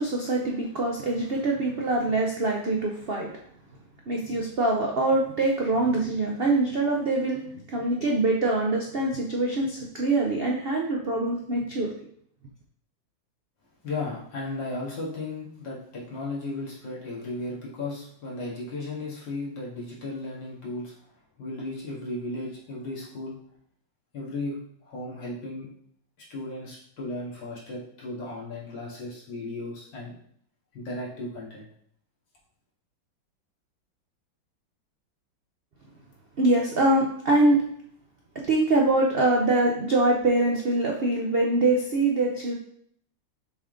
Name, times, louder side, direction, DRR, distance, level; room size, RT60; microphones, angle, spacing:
voice 1, 0.0-3.3 4.1-7.4 7.7-12.0 36.4-37.6 38.5-42.5, right 2 dB, 90° right, -1 dB, 0.5 m, -24 dB
voice 2, 13.8-20.9 21.4-23.4 24.1-25.7 26.3-30.1 30.7-31.7, left 2 dB, 65° left, -5 dB, 2.5 m, -35 dB
6.8 x 3.7 x 3.8 m, 0.66 s
omnidirectional pair, 2.1 m